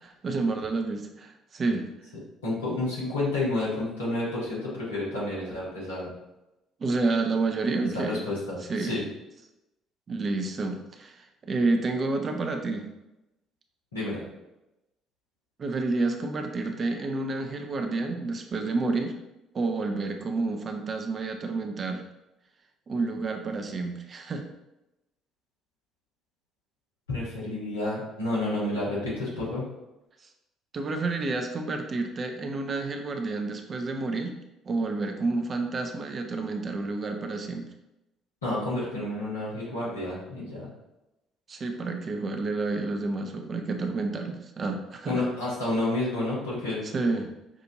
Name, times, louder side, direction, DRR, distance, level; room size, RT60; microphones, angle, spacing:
voice 1, 0.0-1.9 6.8-8.3 8.6-9.0 10.1-12.9 15.6-19.1 19.5-22.0 22.9-24.4 30.7-34.4 34.7-37.7 41.5-45.2 46.8-47.3, right 3 dB, 40° right, 4 dB, 0.6 m, -29 dB
voice 2, 2.4-6.1 8.0-9.0 13.9-14.2 27.1-29.6 38.4-40.7 45.1-46.8, left 2 dB, 85° left, -7 dB, 1.3 m, -30 dB
6.0 x 2.5 x 2.7 m, 0.95 s
figure-of-eight pair, 50°, 0 cm